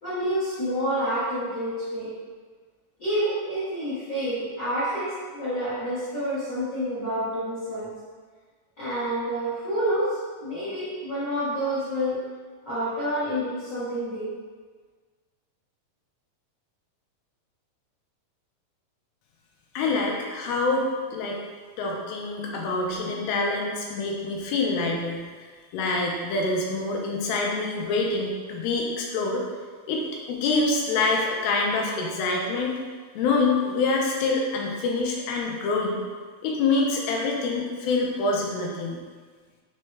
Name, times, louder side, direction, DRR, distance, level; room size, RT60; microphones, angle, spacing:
voice 1, 0.0-2.1 3.0-7.9 8.8-12.2 12.6-14.3, equal, 65° left, -14 dB, 1.0 m, -28 dB
voice 2, 19.8-21.4 21.8-25.5 25.7-29.4 29.9-32.8 33.2-36.0 36.4-39.0, left 3 dB, 80° left, -1 dB, 2.3 m, -26 dB
6.3 x 2.2 x 3.2 m, 1.5 s
omnidirectional pair, 4.2 m